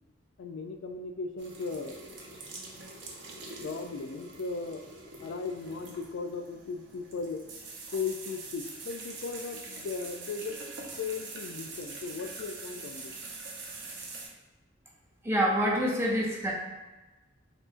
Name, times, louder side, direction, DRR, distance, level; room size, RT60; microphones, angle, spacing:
voice 1, 0.4-2.0 3.6-4.8 5.2-7.4 7.9-10.6 11.0-13.2, left 4 dB, 85° left, 6 dB, 0.3 m, -37 dB
sound 1, 1.4-14.3, right 3 dB, 70° right, 0.6 m, -44 dB
voice 2, 15.2-16.5, equal, 15° right, -3 dB, 0.5 m, -26 dB
3.7 x 2.7 x 2.4 m, 1.1 s
head